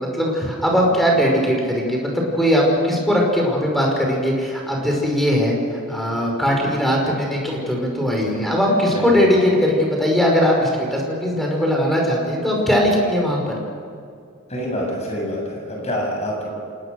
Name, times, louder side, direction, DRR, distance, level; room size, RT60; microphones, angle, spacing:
voice 1, 0.0-13.6, equal, ahead, -1 dB, 5.4 m, -19 dB
voice 2, 8.9-9.2 14.5-16.5, equal, 30° left, -1 dB, 7.5 m, -26 dB
28.0 x 18.5 x 6.7 m, 2.4 s
head